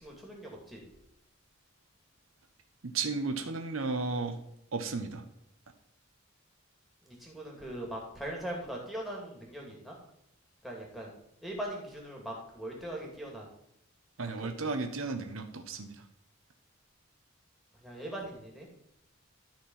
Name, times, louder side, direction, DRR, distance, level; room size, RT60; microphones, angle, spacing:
voice 1, 0.0-0.8 7.1-9.9 10.6-11.1 11.4-13.5 14.4-14.6 17.8-18.7, right 1 dB, ahead, -1 dB, 2.5 m, -40 dB
voice 2, 2.8-4.4 4.7-5.2 14.2-15.9, right 4 dB, 80° right, 7 dB, 1.0 m, -34 dB
13.0 x 4.5 x 5.6 m, 0.76 s
head